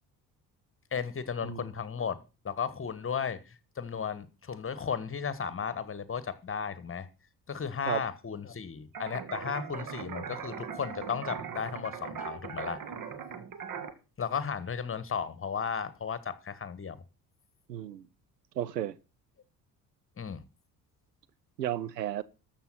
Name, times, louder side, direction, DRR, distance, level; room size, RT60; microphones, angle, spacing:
voice 1, 0.9-7.1 7.5-12.8 14.2-17.0 20.2-20.4, left 6 dB, 25° left, 1.4 m, -35 dB
sound 1, 8.9-13.9, right 6 dB, 40° right, 1.8 m, -40 dB
voice 2, 17.7-18.1 18.6-19.0 21.6-22.2, right 12 dB, 85° right, 0.7 m, -33 dB
13.5 x 7.3 x 5.8 m
figure-of-eight pair, 50°, 48 cm